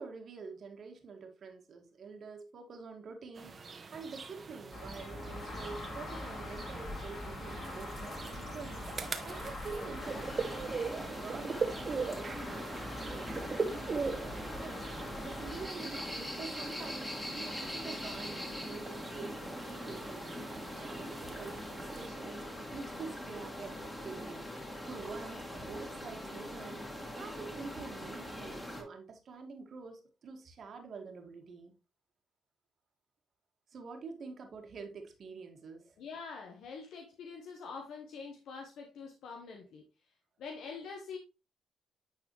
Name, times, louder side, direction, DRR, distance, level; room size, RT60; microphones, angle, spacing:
voice 1, 0.0-14.8 15.2-20.3 20.7-31.7 33.7-35.9, right 4 dB, 55° right, 1.7 m, -47 dB
sound 1, 3.4-22.1, right 4 dB, 35° right, 1.1 m, -42 dB
sound 2, 4.7-15.6, left 2 dB, 40° left, 3.3 m, -44 dB
sound 3, 10.0-28.8, left 1 dB, 10° left, 2.0 m, -42 dB
voice 2, 36.0-39.9 40.4-41.2, left 5 dB, 75° left, 1.0 m, -45 dB
9.6 x 4.1 x 3.0 m
cardioid pair, 90°, 0 cm